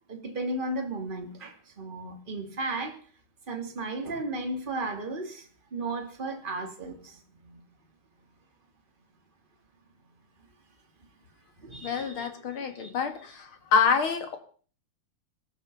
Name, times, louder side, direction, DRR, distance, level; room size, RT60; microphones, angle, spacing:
voice 1, 0.1-3.0 3.5-7.6 11.5-13.2, right 2 dB, 15° right, 3 dB, 1.9 m, -35 dB
voice 2, 11.8-14.4, left 6 dB, 45° left, 7 dB, 1.8 m, -27 dB
20.0 x 13.5 x 5.4 m, 0.43 s
omnidirectional pair, 4.5 m